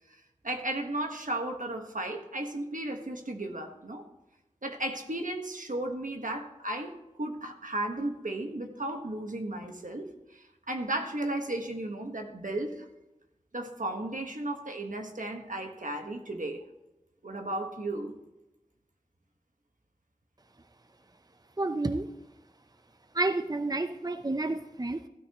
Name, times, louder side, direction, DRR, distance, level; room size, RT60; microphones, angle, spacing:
voice 1, 0.4-4.0 4.6-6.9 7.2-12.9 13.5-16.6 17.2-18.2, right 1 dB, 85° right, 4 dB, 1.4 m, -34 dB
voice 2, 21.6-22.1 23.1-25.1, right 2 dB, 30° right, 9 dB, 0.6 m, -30 dB
15.5 x 12.5 x 3.0 m, 0.97 s
wide cardioid pair, 40°, 13 cm